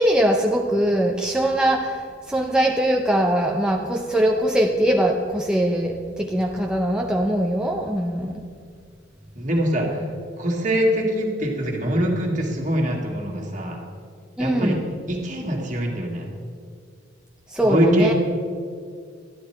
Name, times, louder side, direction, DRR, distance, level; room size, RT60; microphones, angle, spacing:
voice 1, 0.0-8.3 14.4-14.8 17.5-18.1, right 1 dB, 5° right, 1 dB, 0.5 m, -21 dB
voice 2, 9.4-10.0 10.4-13.8 14.4-14.8 15.1-16.3 17.7-18.1, equal, 40° right, 0 dB, 1.8 m, -23 dB
12.5 x 10.0 x 4.4 m, 2.2 s
head